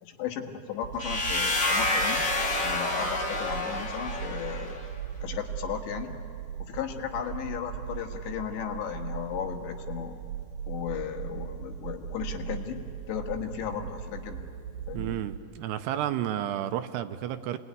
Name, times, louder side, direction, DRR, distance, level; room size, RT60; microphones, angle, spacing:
voice 1, 0.0-2.2 2.6-4.8 5.2-6.1 6.6-10.2 10.7-12.8 13.1-14.5 14.9-15.1, left 9 dB, 80° left, 4 dB, 3.8 m, -35 dB
sound 1, 0.8-15.4, right 9 dB, 55° right, 2.6 m, -39 dB
sound 2, 1.0-4.8, left 2 dB, 45° left, 1.0 m, -28 dB
voice 2, 14.9-17.6, right 11 dB, 80° right, 9 dB, 2.7 m, -31 dB
28.0 x 20.5 x 9.6 m, 2.5 s
omnidirectional pair, 5.0 m